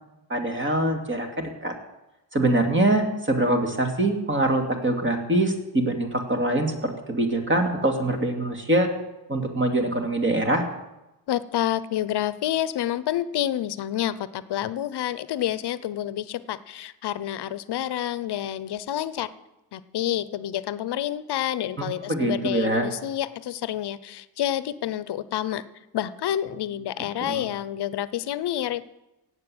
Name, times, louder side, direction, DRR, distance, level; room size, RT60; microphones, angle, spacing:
voice 1, 0.3-1.7 2.3-8.9 9.3-10.6 21.8-22.9 27.2-27.4, right 1 dB, 25° right, 4 dB, 2.6 m, -24 dB
voice 2, 11.3-19.3 19.7-25.6 25.9-28.8, left 11 dB, 60° left, 16 dB, 0.8 m, -28 dB
17.5 x 8.1 x 7.9 m, 0.95 s
cardioid pair, 110°, 45 cm